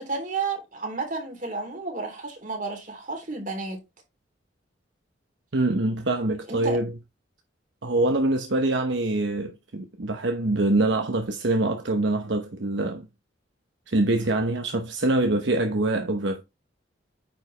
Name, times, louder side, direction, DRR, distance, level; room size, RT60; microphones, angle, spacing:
voice 1, 0.0-3.8 6.5-6.8, right 4 dB, 45° right, 3.4 m, -32 dB
voice 2, 5.5-6.9 7.8-13.1 13.9-16.4, right 2 dB, 75° right, 0.9 m, -24 dB
9.3 x 4.8 x 3.3 m
head